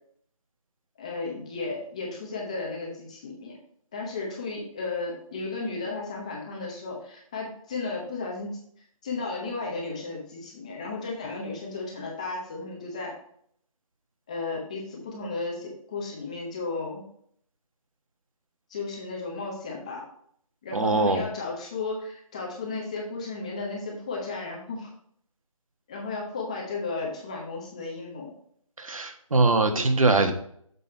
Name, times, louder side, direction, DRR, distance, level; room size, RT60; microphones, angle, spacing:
voice 1, 1.0-3.5 3.9-8.6 9.0-13.1 14.3-17.0 18.7-20.0 20.6-24.9 25.9-28.3, left 3 dB, 10° left, -1 dB, 0.8 m, -34 dB
voice 2, 20.7-21.2 28.8-30.3, right 3 dB, 65° right, 5 dB, 1.4 m, -22 dB
6.9 x 5.4 x 4.2 m, 0.65 s
figure-of-eight pair, 170°, 18 cm